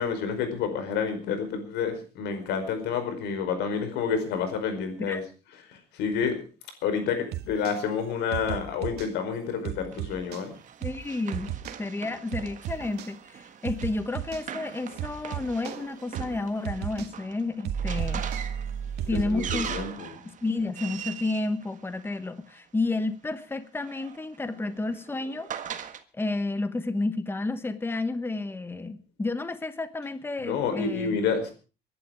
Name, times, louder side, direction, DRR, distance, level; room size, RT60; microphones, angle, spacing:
voice 1, 0.0-5.2 5.7-6.4 6.8-10.5 19.1-20.1 30.4-31.5, left 6 dB, 85° left, 8 dB, 4.9 m, -29 dB
sound 1, 7.3-7.8 8.3-9.1 9.6-10.4 10.8-11.0 11.3-11.8 12.3-13.1 13.6-14.4 15.0-15.8 16.1-16.4 16.6-17.1 17.6-19.8, right 9 dB, 75° right, 2.1 m, -34 dB
Run, 9.9-22.5 23.5-26.0, right 8 dB, 50° right, 1.7 m, -41 dB
voice 2, 10.8-11.5 11.8-18.3 19.1-19.7 20.2-25.5 26.1-31.2, left 2 dB, 15° left, 12 dB, 1.1 m, -31 dB
22.0 x 11.0 x 4.9 m, 0.36 s
cardioid pair, 110°, 17 cm